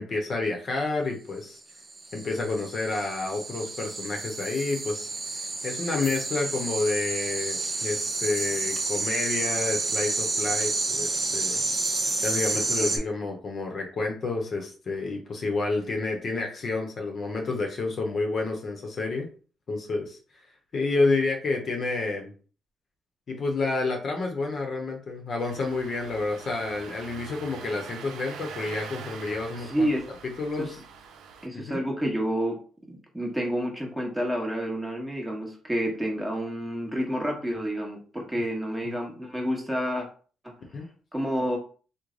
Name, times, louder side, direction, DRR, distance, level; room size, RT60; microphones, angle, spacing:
voice 1, 0.0-1.6 2.1-11.6 12.2-19.3 19.7-20.4 20.7-22.3 23.3-29.9 30.2-30.8 31.5-31.8 40.7-40.9, left 3 dB, 50° left, 2 dB, 0.8 m, -29 dB
sound 1, 1.7-13.0, right 3 dB, 30° right, 0.7 m, -30 dB
voice 2, 12.7-13.1 29.7-30.0 30.6-30.7 31.4-32.6 32.9-40.1 40.4-40.5 41.1-41.6, equal, 5° right, -1 dB, 1.2 m, -29 dB
Engine starting, 25.4-31.5, right 6 dB, 85° right, 0.5 m, -43 dB
3.1 x 2.1 x 3.8 m, 0.39 s
cardioid pair, 90°, 0 cm